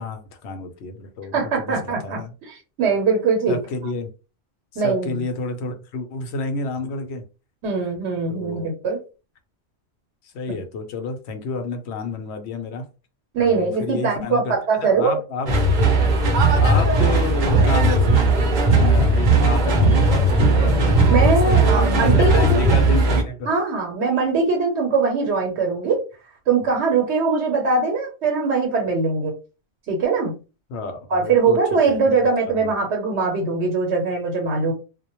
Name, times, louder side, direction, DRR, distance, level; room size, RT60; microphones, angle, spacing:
voice 1, 0.0-2.3 3.5-4.1 4.7-7.2 8.3-8.7 10.2-12.8 13.4-14.5 14.8-15.5 16.6-21.4 21.7-23.5 30.7-32.2 32.5-32.7, left 3 dB, 75° left, 6 dB, 0.8 m, -30 dB
voice 2, 1.3-3.6 4.8-5.2 7.6-9.0 13.3-15.1 21.1-22.7 23.5-26.0 26.5-29.3 29.9-30.3 31.1-34.7, right 4 dB, 80° right, 0 dB, 1.0 m, -21 dB
sound 1, 15.5-23.2, right 2 dB, 50° right, 0.7 m, -17 dB
2.1 x 2.1 x 2.8 m, 0.33 s
omnidirectional pair, 1.1 m